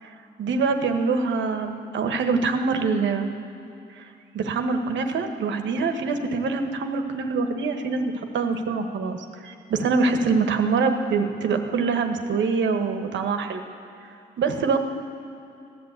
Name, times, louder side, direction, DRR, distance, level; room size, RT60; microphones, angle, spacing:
voice 1, 0.0-3.3 3.9-4.1 4.3-13.6 14.4-14.8, right 4 dB, 70° right, 6 dB, 1.3 m, -24 dB
15.0 x 11.0 x 8.1 m, 2.6 s
cardioid pair, 90°, 20 cm